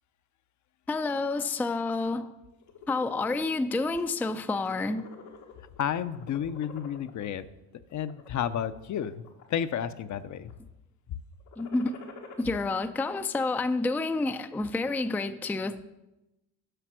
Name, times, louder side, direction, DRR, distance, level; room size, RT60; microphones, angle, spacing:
voice 1, 0.9-2.3 2.9-5.0 11.6-11.9 12.4-15.8, left 3 dB, 5° left, 9 dB, 0.4 m, -29 dB
sound 1, 2.5-3.5 4.0-4.2 4.5-5.8 6.1-7.3 7.9-8.4 9.0-9.7 10.0-10.5 11.4-12.7, left 5 dB, 90° left, 1.5 m, -48 dB
voice 2, 5.8-7.5 7.9-10.5, left 9 dB, 45° left, 12 dB, 0.6 m, -31 dB
7.9 x 5.8 x 6.1 m, 0.97 s
supercardioid pair, 70°, 39 cm